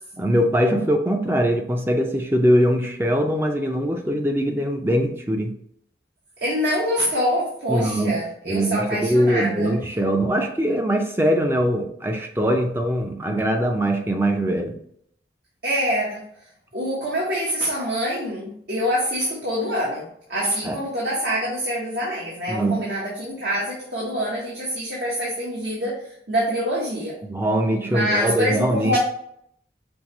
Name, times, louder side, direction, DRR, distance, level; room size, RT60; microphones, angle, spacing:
voice 1, 0.2-5.5 7.7-8.2 8.5-14.8 20.6-20.8 22.5-22.9 27.2-29.0, equal, 15° right, 0.4 m, -22 dB
voice 2, 6.4-9.7 15.6-16.2 16.7-26.0 26.3-27.2 27.8-29.0, equal, 70° right, 1.2 m, -25 dB
5.4 x 2.9 x 3.0 m
head